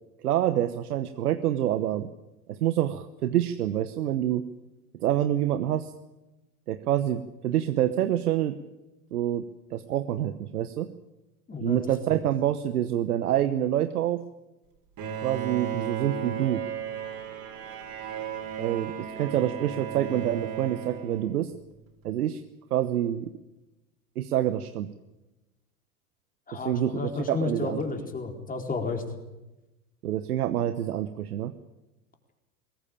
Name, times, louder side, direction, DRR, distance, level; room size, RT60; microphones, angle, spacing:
voice 1, 0.2-2.1 2.5-4.4 5.0-5.9 6.7-8.6 9.1-9.4 9.7-10.9 11.6-14.2 15.2-16.6 18.6-21.5 22.0-22.4 22.7-23.3 24.2-24.9 26.5-27.8 30.0-31.5, right 11 dB, 80° right, 11 dB, 1.1 m, -27 dB
voice 2, 11.5-12.1 26.5-29.0, left 4 dB, 20° left, 4 dB, 4.2 m, -32 dB
Bowed string instrument, 15.0-21.7, right 8 dB, 45° right, 5.1 m, -35 dB
21.5 x 18.0 x 8.8 m, 1.0 s
hypercardioid pair, 95°, 45 cm